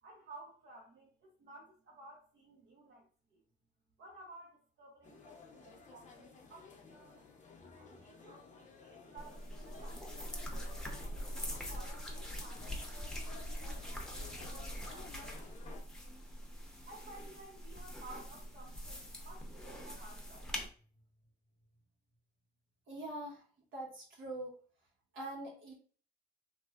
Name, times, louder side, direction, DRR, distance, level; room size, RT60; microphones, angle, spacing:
voice 1, 0.0-3.4 4.0-7.3 7.8-11.0 11.5-15.5 16.9-20.5, right 2 dB, 65° right, -3 dB, 0.8 m, -55 dB
sound 1, 5.0-15.8, left 4 dB, 40° left, 0.7 m, -55 dB
sound 2, 9.2-20.7, equal, 5° left, 0.7 m, -43 dB
voice 2, 22.9-23.4 23.7-24.6 25.1-25.7, right 1 dB, 80° right, -2 dB, 1.3 m, -43 dB
3.0 x 2.6 x 2.4 m, 0.42 s
cardioid pair, 90°, 20 cm